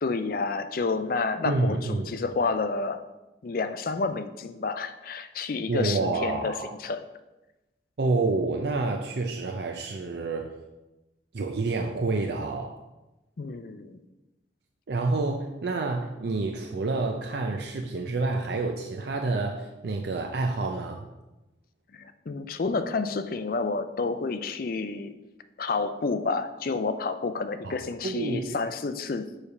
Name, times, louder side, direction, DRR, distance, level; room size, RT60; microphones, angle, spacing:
voice 1, 0.0-3.0 3.4-6.5 6.8-7.0 13.4-14.0 21.9-25.1 25.6-29.3, left 4 dB, 50° left, 9 dB, 0.4 m, -29 dB
voice 2, 1.4-2.2 5.7-6.8 8.0-10.5 11.3-12.8 14.9-21.1 27.6-28.6, right 3 dB, 60° right, 2 dB, 0.5 m, -28 dB
6.9 x 3.3 x 5.5 m, 1.0 s
head